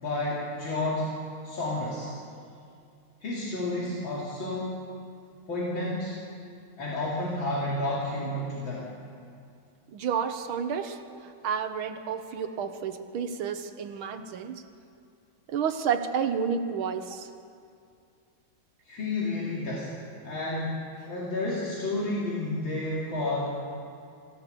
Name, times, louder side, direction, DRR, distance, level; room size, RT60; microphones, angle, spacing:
voice 1, 0.0-1.2 1.4-2.1 3.2-4.8 5.5-6.2 6.8-8.9 18.9-19.9 20.2-23.6, left 2 dB, 70° left, -6 dB, 3.5 m, -31 dB
voice 2, 9.9-14.6 15.5-17.3, right 7 dB, 90° right, 8 dB, 1.9 m, -30 dB
25.5 x 16.0 x 6.8 m, 2.5 s
omnidirectional pair, 2.2 m